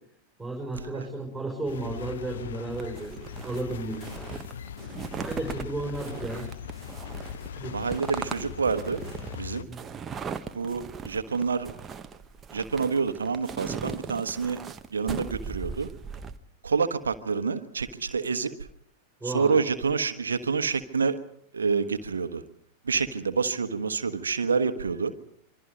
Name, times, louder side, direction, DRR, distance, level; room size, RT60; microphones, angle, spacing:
voice 1, 0.4-4.4 5.2-6.5 7.6-7.9 9.7-9.9 19.2-19.6, right 2 dB, 5° right, 1 dB, 5.8 m, -34 dB
sound 1, 1.7-9.6, left 8 dB, 60° left, 1.0 m, -40 dB
sound 2, 2.7-16.4, right 6 dB, 20° right, 1.2 m, -39 dB
voice 2, 7.7-9.0 9.4-9.7 10.5-11.7 12.5-14.6 14.9-15.9 16.6-18.5 19.2-21.2 21.5-22.4 22.8-25.1, right 5 dB, 70° right, 10 dB, 1.3 m, -27 dB
26.0 x 24.0 x 5.2 m, 0.68 s
figure-of-eight pair, 90°, 0 cm